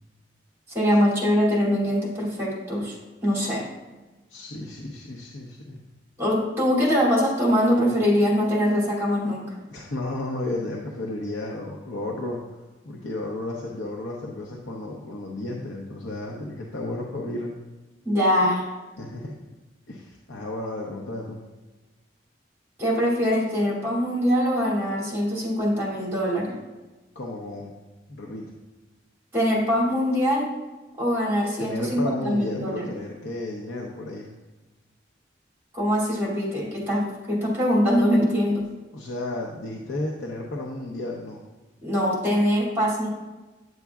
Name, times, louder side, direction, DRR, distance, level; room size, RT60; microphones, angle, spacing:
voice 1, 0.7-3.0 3.2-3.7 6.2-9.4 18.0-18.7 22.8-26.6 29.3-30.5 31.0-32.9 35.7-38.7 41.8-43.1, equal, 15° right, -4 dB, 2.6 m, -23 dB
voice 2, 4.3-5.8 9.7-12.4 12.8-17.5 19.0-19.4 19.9-21.4 27.1-27.7 28.1-28.5 31.6-34.3 38.9-41.4, left 2 dB, 75° left, -1 dB, 0.7 m, -33 dB
9.3 x 7.1 x 2.3 m, 1.2 s
head